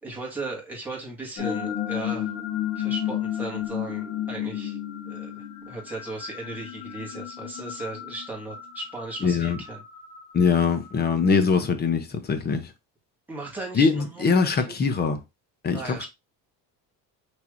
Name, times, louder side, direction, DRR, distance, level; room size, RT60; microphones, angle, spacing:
voice 1, 0.0-2.3 2.8-4.8 5.1-9.8 13.3-14.8 15.7-16.1, right 2 dB, 5° right, 1.8 m, -37 dB
sound 1, 1.4-11.4, left 11 dB, 70° left, 1.2 m, -33 dB
voice 2, 9.2-9.6 10.3-12.6 13.7-15.2 15.6-15.8, left 5 dB, 25° left, 0.7 m, -22 dB
5.8 x 3.4 x 2.5 m
cardioid pair, 155°, 38 cm